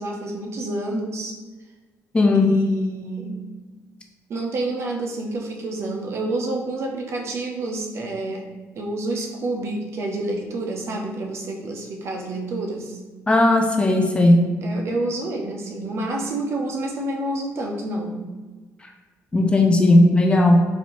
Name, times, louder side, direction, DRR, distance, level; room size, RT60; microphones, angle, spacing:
voice 1, 0.0-1.4 2.3-3.4 4.3-13.0 14.6-18.2, right 2 dB, 50° right, 1 dB, 0.7 m, -28 dB
voice 2, 2.1-2.6 13.3-14.5 19.3-20.6, left 2 dB, 20° left, 2 dB, 0.4 m, -16 dB
4.2 x 2.6 x 3.0 m, 1.3 s
cardioid pair, 130°, 6 cm